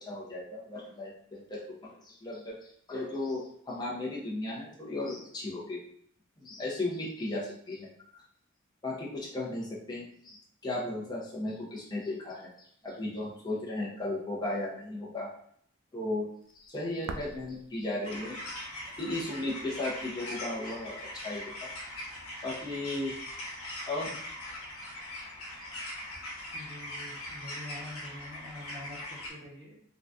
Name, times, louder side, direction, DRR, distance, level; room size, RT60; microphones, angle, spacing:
voice 1, 0.0-5.8 6.4-7.9 8.8-15.3 15.9-16.3 16.5-18.3 19.0-21.0 21.2-21.7 22.4-23.1 23.9-24.2 25.6-25.7, left 2 dB, 20° left, -5 dB, 0.6 m, -36 dB
sound 1, 16.4-23.2, right 3 dB, 65° right, 0.3 m, -50 dB
sound 2, 18.0-29.3, left 1 dB, 80° left, 0.9 m, -41 dB
voice 2, 26.5-29.8, left 1 dB, 20° right, -4 dB, 0.8 m, -46 dB
3.8 x 2.2 x 2.4 m, 0.65 s
head